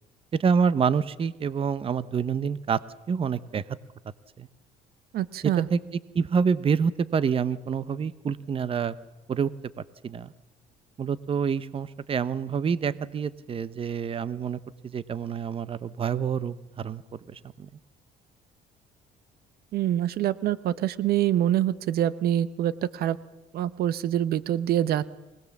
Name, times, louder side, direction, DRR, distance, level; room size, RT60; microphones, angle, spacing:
voice 1, 0.4-2.8 3.1-3.6 5.7-5.8 6.1-8.9 9.3-9.5 10.0-10.3 11.0-14.6 14.9-17.0, right 6 dB, 35° right, 16 dB, 0.8 m, -27 dB
voice 2, 5.1-5.7 19.7-23.2 23.5-25.1, right 12 dB, 65° right, 16 dB, 0.8 m, -25 dB
24.0 x 19.0 x 7.2 m, 1.1 s
cardioid pair, 110°, 17 cm